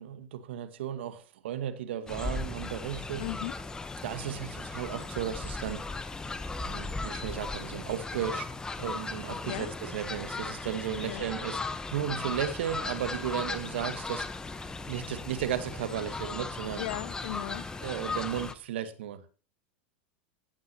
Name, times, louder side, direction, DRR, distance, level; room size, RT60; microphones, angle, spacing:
voice 1, 0.0-3.2 4.0-6.0 6.6-8.5 8.8-14.3 14.9-16.8 17.8-19.2, right 10 dB, 80° right, 1.4 m, -35 dB
Fowl, 2.1-18.5, left 3 dB, 10° left, 0.9 m, -37 dB
voice 2, 3.2-3.5 9.4-9.7 11.0-11.3 16.8-17.7, left 17 dB, 70° left, 0.6 m, -37 dB
18.0 x 7.7 x 2.9 m
supercardioid pair, 120°, 6 cm